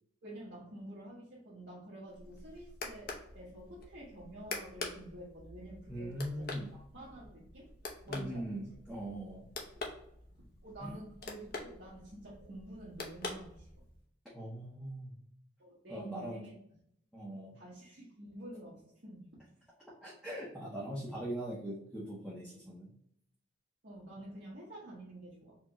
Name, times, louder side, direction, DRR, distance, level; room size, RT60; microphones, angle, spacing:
voice 1, 0.2-7.7 8.0-8.8 9.7-9.9 10.4-13.7 15.6-16.6 17.5-19.5 23.8-25.6, right 1 dB, 60° right, -8 dB, 1.2 m, -49 dB
sound 1, 2.1-14.0, left 3 dB, 50° left, 0.7 m, -46 dB
voice 2, 5.9-6.7 8.1-9.5 10.8-10.9 14.3-15.2 15.9-16.4 17.1-17.6 20.0-22.9, right 1 dB, ahead, -7 dB, 0.8 m, -41 dB
4.4 x 2.3 x 2.9 m, 0.72 s
head